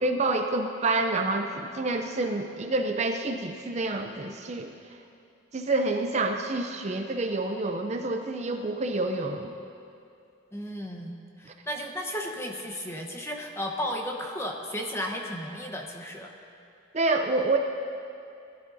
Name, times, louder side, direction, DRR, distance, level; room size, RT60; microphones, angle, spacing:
voice 1, 0.0-4.7 5.5-9.5 11.5-11.6 16.9-17.6, right 2 dB, 35° right, 4 dB, 0.5 m, -28 dB
voice 2, 10.5-11.1 11.4-16.3, equal, 15° left, 1 dB, 1.0 m, -34 dB
19.5 x 12.5 x 2.7 m, 2.6 s
head